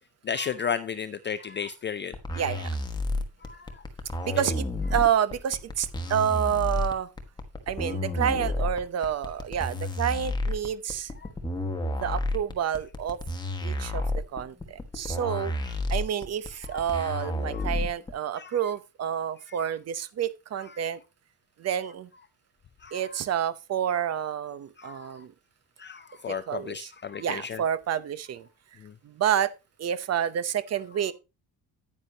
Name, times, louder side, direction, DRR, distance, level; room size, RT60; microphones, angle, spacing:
voice 1, 0.2-2.4 3.4-3.8 6.0-6.1 11.2-11.3 15.6-15.8 16.6-16.9 17.5-17.7 18.4-18.6 19.5-19.7 20.5-20.9 22.8-23.2 23.9-24.0 24.8-25.2 25.8-27.6 28.8-28.9, left 7 dB, 30° left, 0.4 m, -35 dB
sound 1, 2.1-18.1, left 1 dB, 10° left, 1.2 m, -30 dB
voice 2, 2.4-2.8 4.2-7.1 7.7-11.1 12.0-13.2 13.6-14.0 14.3-15.5 15.9-21.0 21.6-22.1 22.9-25.3 26.3-26.9 27.2-28.5 29.0-29.5 29.8-31.1, right 9 dB, 40° right, 0.8 m, -29 dB
9.8 x 9.7 x 2.8 m
cardioid pair, 175°, 40 cm